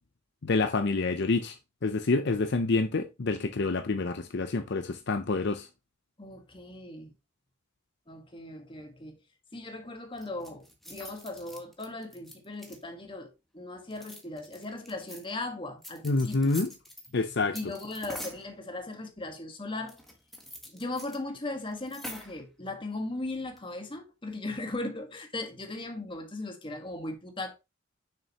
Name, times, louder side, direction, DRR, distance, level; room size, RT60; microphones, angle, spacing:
voice 1, 0.4-1.6 1.8-5.7 16.0-16.7 17.1-17.6, left 3 dB, 55° left, 0.6 m, -27 dB
voice 2, 6.2-7.1 8.1-9.2 9.5-16.6 17.5-20.0 20.6-27.5, left 2 dB, 25° left, 1.6 m, -38 dB
sound 1, 10.2-13.0 13.9-15.2 15.8-17.1 17.5-18.5 19.9-21.2 21.4-21.5 21.7-22.4 23.3-23.7, equal, ahead, 1.4 m, -45 dB
6.7 x 6.4 x 2.9 m
head